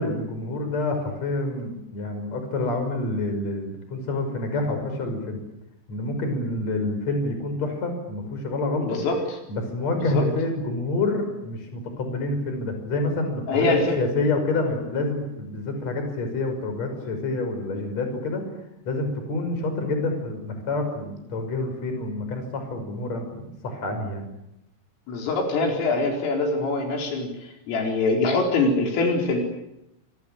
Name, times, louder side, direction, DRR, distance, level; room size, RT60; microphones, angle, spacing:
voice 1, 0.0-5.4 5.9-9.0 9.5-18.4 18.8-24.2, left 2 dB, 35° left, 6 dB, 6.5 m, -28 dB
voice 2, 8.8-9.2 10.1-10.2 13.5-14.0 25.1-27.3 27.7-29.4, left 3 dB, 75° left, 2 dB, 6.9 m, -23 dB
26.5 x 24.0 x 9.0 m, 0.86 s
omnidirectional pair, 5.9 m